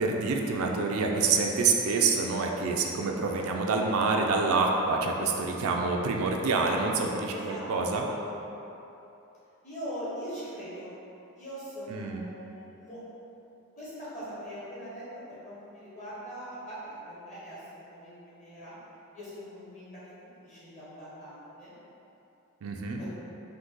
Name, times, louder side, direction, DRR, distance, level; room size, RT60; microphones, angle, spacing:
voice 1, 0.0-8.1 11.9-12.2 22.6-23.0, right 4 dB, 75° right, 1 dB, 0.4 m, -27 dB
voice 2, 7.3-7.7 7.9-8.2 9.6-10.9 11.4-13.2 13.7-16.8 17.1-18.8 19.1-19.9 20.4-21.7 23.0-23.1, equal, 35° left, -10 dB, 1.2 m, -41 dB
3.9 x 2.7 x 3.7 m, 3.0 s
head